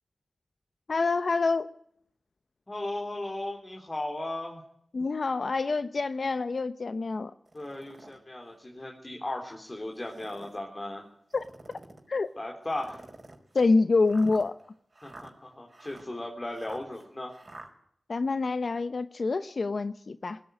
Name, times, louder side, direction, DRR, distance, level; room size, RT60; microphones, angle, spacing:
voice 1, 0.9-1.7 4.9-7.3 11.3-11.4 12.1-12.3 13.5-14.5 18.1-20.4, left 3 dB, 50° left, 11 dB, 0.8 m, -26 dB
voice 2, 2.7-4.6 7.5-11.0 12.4-13.0 15.0-17.3, left 1 dB, 20° left, 1 dB, 3.4 m, -36 dB
sound 1, 7.5-8.2 8.8-8.9 9.9-10.6 11.3-12.1 12.7-17.7, right 2 dB, 30° right, 5.1 m, -49 dB
20.5 x 17.0 x 9.2 m, 0.68 s
wide cardioid pair, 110°, 0 cm